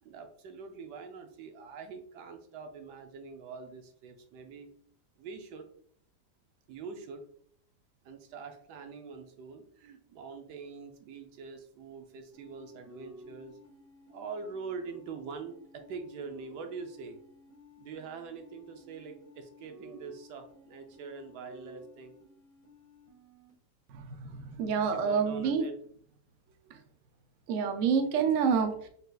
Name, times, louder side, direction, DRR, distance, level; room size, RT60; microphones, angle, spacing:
voice 1, 0.0-4.7 5.2-5.7 6.7-7.2 8.0-13.6 14.1-17.2 17.8-22.1 24.9-25.7, right 5 dB, 70° right, 5 dB, 1.1 m, -44 dB
sound 1, 12.3-23.5, equal, 55° right, 1.9 m, -54 dB
voice 2, 23.9-25.7 26.7-26.8 27.5-28.9, right 6 dB, 90° right, 6 dB, 0.6 m, -28 dB
3.9 x 3.9 x 2.3 m, 0.62 s
omnidirectional pair, 2.0 m